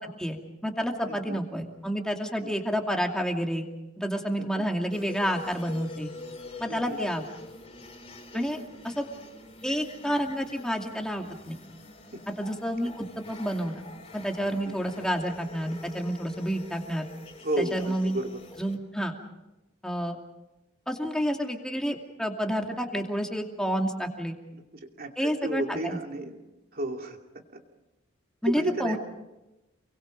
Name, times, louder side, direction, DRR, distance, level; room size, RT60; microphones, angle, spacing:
voice 1, 0.0-3.6 4.0-6.1 6.6-7.3 8.3-9.1 9.6-11.6 12.4-13.8 14.1-17.1 17.6-18.2 18.6-19.2 19.8-20.2 20.9-24.4 25.2-26.0 28.4-29.0, equal, 5° left, 2 dB, 2.5 m, -29 dB
voice 2, 1.1-1.4 2.4-2.5 4.4-4.6 6.7-7.0 8.3-8.6 12.1-12.2 14.7-14.8 17.4-18.4 25.0-26.4 26.7-27.2 28.5-29.0, right 1 dB, 50° right, 3 dB, 2.7 m, -33 dB
sound 1, 4.9-18.8, left 2 dB, 30° left, 3.6 m, -46 dB
29.5 x 23.0 x 5.3 m, 0.99 s
head